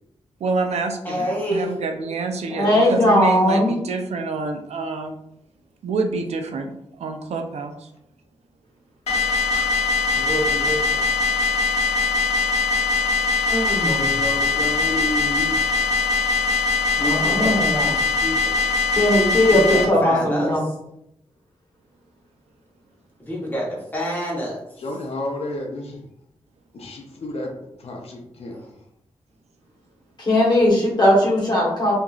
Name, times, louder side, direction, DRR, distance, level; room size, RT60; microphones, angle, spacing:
voice 1, 0.4-5.2 5.8-7.9, right 3 dB, 80° right, 5 dB, 0.4 m, -27 dB
voice 2, 1.0-1.7 10.1-11.0 13.5-14.3 17.2-18.6 19.5-20.7 23.2-24.6 28.5-28.7, equal, 15° left, -4 dB, 1.0 m, -28 dB
voice 3, 2.5-3.7 17.0-17.9 19.0-20.7 30.2-32.0, left 1 dB, 40° left, -3 dB, 1.1 m, -18 dB
sound 1, 9.1-19.9, left 4 dB, 90° left, 0.8 m, -21 dB
voice 4, 13.8-15.6 24.8-26.0 26.7-27.5 27.8-28.6, left 2 dB, 65° left, 1 dB, 0.5 m, -30 dB
2.8 x 2.5 x 2.3 m, 0.78 s
wide cardioid pair, 95°, 11 cm